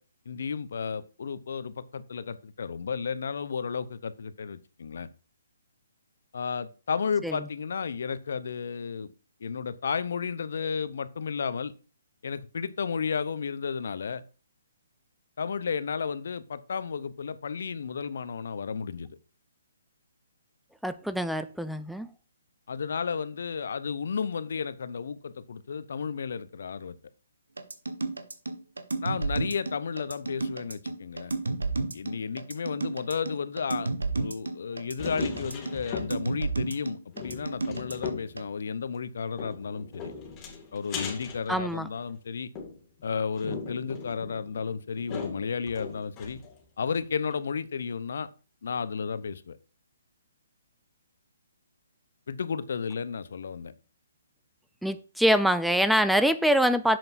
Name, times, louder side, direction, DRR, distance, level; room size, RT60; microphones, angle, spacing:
voice 1, 0.3-5.1 6.3-9.1 9.4-11.7 12.2-14.2 15.4-19.1 22.7-27.0 29.0-31.4 31.9-40.1 40.7-42.5 43.0-46.4 46.8-48.3 48.6-49.6 52.3-53.7, left 6 dB, 60° left, 0.8 m, -33 dB
voice 2, 20.8-22.1 41.5-41.9 54.8-57.0, equal, ahead, 0.4 m, -24 dB
sound 1, 27.6-38.4, right 3 dB, 75° right, 1.5 m, -31 dB
sound 2, 35.0-36.4 36.7-36.8 37.1-38.4 39.4-42.1 42.6-46.6 46.9-47.0 47.3-47.4, left 5 dB, 20° left, 2.3 m, -40 dB
10.5 x 7.8 x 2.7 m
figure-of-eight pair, 135°, 0 cm